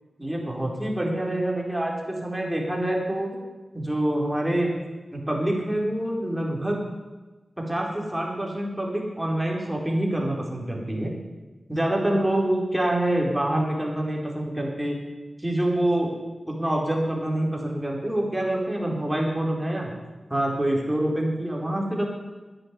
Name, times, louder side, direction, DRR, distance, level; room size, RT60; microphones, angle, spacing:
voice 1, 0.2-3.3 3.7-4.7 5.1-6.8 7.6-11.1 11.7-15.0 15.4-16.2 16.5-19.9 20.3-22.1, right 1 dB, 10° right, -1 dB, 4.5 m, -26 dB
10.5 x 10.5 x 9.7 m, 1.2 s
cardioid pair, 50°, 0 cm